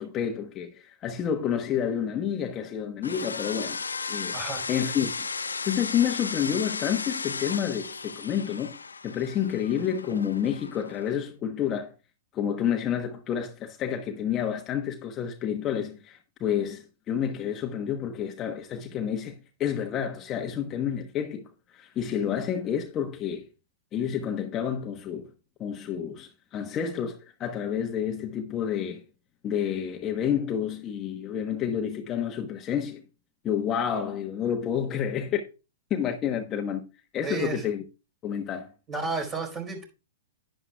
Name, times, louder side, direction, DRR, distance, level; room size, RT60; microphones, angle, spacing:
voice 1, 0.0-3.8 4.1-4.4 4.7-5.3 5.6-8.8 9.0-11.9 12.3-23.5 23.9-25.3 25.6-29.0 29.4-33.0 33.4-35.4 35.9-36.8 37.1-37.8 38.2-38.7, left 8 dB, 30° left, 1.1 m, -29 dB
sound 1, 3.0-11.2, left 4 dB, 90° left, 0.5 m, -35 dB
voice 2, 4.3-4.6 37.2-37.6 38.9-39.8, right 4 dB, 25° right, 4.3 m, -32 dB
11.0 x 10.0 x 2.3 m
hypercardioid pair, 115°, 0 cm